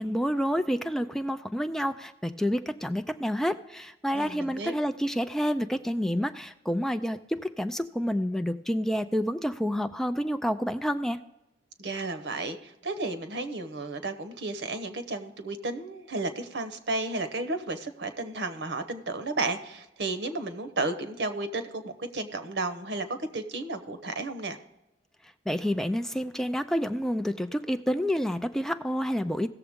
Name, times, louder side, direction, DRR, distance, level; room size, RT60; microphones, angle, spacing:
voice 1, 0.0-11.2 25.5-29.5, equal, 5° left, 9 dB, 0.4 m, -29 dB
voice 2, 4.1-4.7 11.8-24.6, right 2 dB, 90° right, 10 dB, 1.0 m, -33 dB
17.0 x 6.9 x 3.6 m, 0.92 s
head